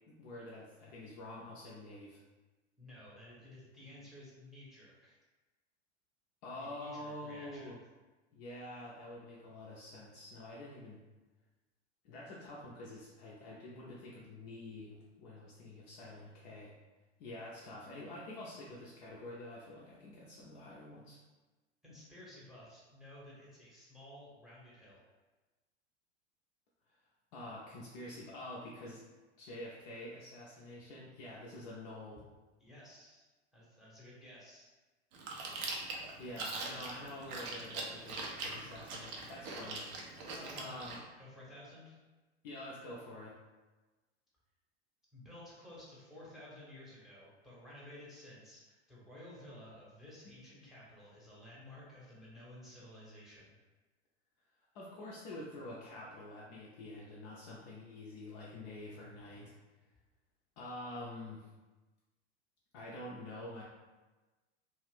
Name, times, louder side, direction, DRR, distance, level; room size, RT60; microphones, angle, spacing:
voice 1, 0.1-2.2 6.4-7.8 8.3-11.0 12.0-16.7 17.2-21.2 27.3-29.0 29.4-32.2 36.2-39.8 40.2-41.0 42.4-43.4 54.7-59.5 60.6-61.5 62.7-63.6, left 1 dB, 35° left, -5 dB, 0.5 m, -47 dB
voice 2, 2.8-5.2 6.6-7.8 21.8-25.0 32.6-33.3 33.5-34.7 38.6-38.7 40.3-40.8 41.2-42.0 45.1-53.5, left 1 dB, ahead, -7 dB, 0.8 m, -54 dB
Chewing mastication, 35.1-41.0, right 3 dB, 35° right, 0.5 m, -42 dB
2.5 x 2.4 x 3.3 m, 1.2 s
figure-of-eight pair, 85°, 35 cm